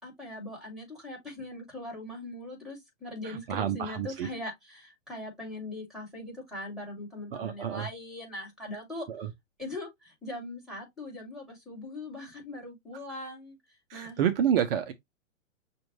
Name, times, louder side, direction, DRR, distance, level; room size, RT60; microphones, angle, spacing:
voice 1, 0.0-9.1 9.6-13.6 13.9-14.2, left 1 dB, ahead, 2.7 m, -40 dB
voice 2, 3.2-4.3 7.3-7.9 9.1-9.3 13.9-14.9, right 9 dB, 45° right, 0.7 m, -29 dB
6.1 x 2.6 x 3.1 m
hypercardioid pair, 140°, 39 cm